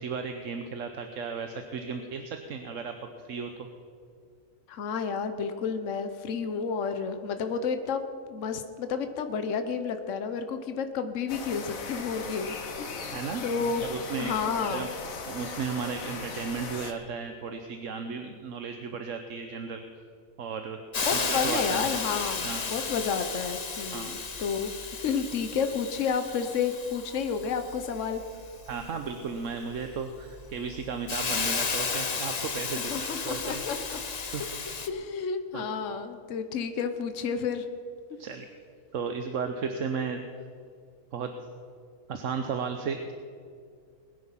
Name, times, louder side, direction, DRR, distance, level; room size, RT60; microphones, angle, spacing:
voice 1, 0.0-3.7 13.1-13.4 13.8-14.9 15.3-19.8 20.4-20.8 21.1-21.8 22.4-22.7 23.9-24.1 28.7-33.6 34.3-34.5 35.5-35.6 38.2-38.5 38.9-40.2 41.1-41.3 42.1-43.1, right 5 dB, 70° right, 6 dB, 1.2 m, -34 dB
voice 2, 4.7-8.0 8.3-13.8 14.2-14.9 21.0-28.2 32.8-34.0 34.9-37.6, left 6 dB, 70° left, 8 dB, 1.2 m, -31 dB
sound 1, 11.3-16.9, left 4 dB, 90° left, 1.7 m, -38 dB
Hiss, 20.9-34.9, left 5 dB, 35° left, 0.9 m, -34 dB
21.5 x 9.7 x 5.7 m, 2.3 s
omnidirectional pair, 1.4 m